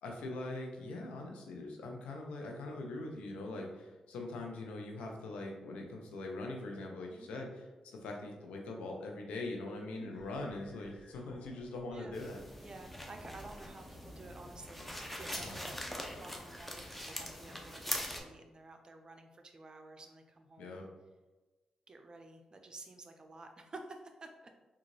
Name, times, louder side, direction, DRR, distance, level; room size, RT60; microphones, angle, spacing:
voice 1, 0.0-12.4 15.3-15.6 20.6-20.9, left 2 dB, 85° left, 1 dB, 0.6 m, -42 dB
voice 2, 9.6-10.1 11.9-12.2 12.6-20.8 21.9-24.5, right 2 dB, 40° right, 5 dB, 0.5 m, -52 dB
sound 1, 10.1-13.7, equal, 25° left, 1.1 m, -58 dB
sound 2, 12.1-18.2, equal, 5° left, 0.7 m, -43 dB
3.7 x 2.4 x 3.1 m, 1.2 s
supercardioid pair, 50°, 2 cm